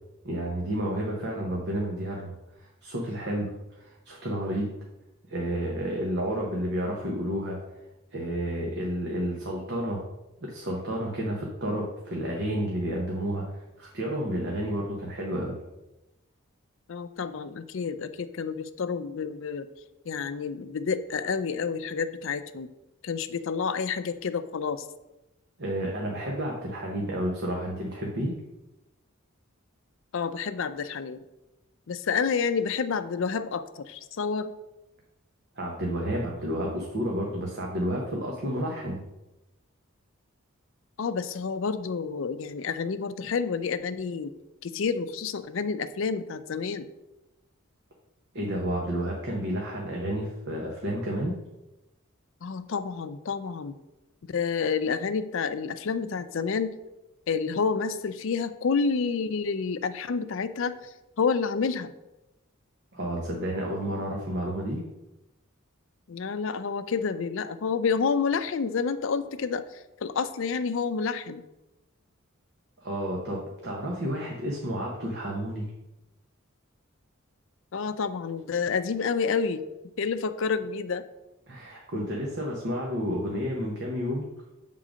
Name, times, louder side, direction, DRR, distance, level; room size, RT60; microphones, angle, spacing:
voice 1, 0.2-4.7 5.3-7.6 8.1-10.0 10.4-15.6 25.6-28.3 35.5-39.0 48.3-51.4 62.9-64.8 72.8-75.7 81.5-84.3, equal, 55° right, -2 dB, 1.0 m, -31 dB
voice 2, 16.9-19.7 20.1-22.7 23.0-24.8 30.1-31.2 31.9-34.5 41.0-44.3 44.6-46.9 52.4-53.8 54.2-56.8 57.3-60.9 61.2-61.9 66.1-71.4 77.7-79.6 80.0-81.0, left 5 dB, 65° left, 11 dB, 0.4 m, -29 dB
7.5 x 3.8 x 5.0 m, 0.98 s
head